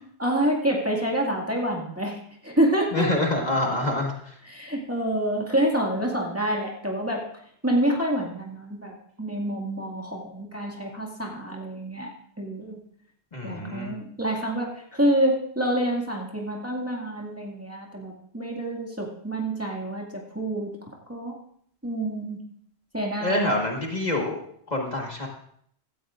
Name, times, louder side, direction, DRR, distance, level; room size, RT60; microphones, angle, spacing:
voice 1, 0.2-3.1 4.5-7.2 7.6-12.1 12.4-12.8 13.4-20.7 21.1-21.3 21.8-22.4 22.9-23.5, right 1 dB, 15° right, -2 dB, 2.0 m, -27 dB
voice 2, 2.9-4.4 13.3-13.9 23.2-24.4 24.7-25.3, left 1 dB, 40° left, 0 dB, 1.7 m, -26 dB
17.0 x 13.5 x 2.5 m, 0.66 s
omnidirectional pair, 1.1 m